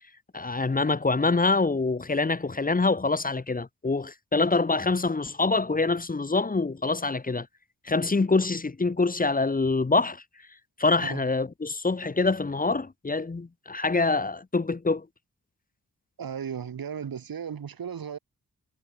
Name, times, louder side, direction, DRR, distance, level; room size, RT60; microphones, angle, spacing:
voice 1, 0.3-7.5 7.8-10.2 10.8-15.1, left 3 dB, 25° left, 1.5 m, -25 dB
voice 2, 16.2-18.2, right 7 dB, 85° right, 4.3 m, -35 dB
wide cardioid pair, 180°, 34 cm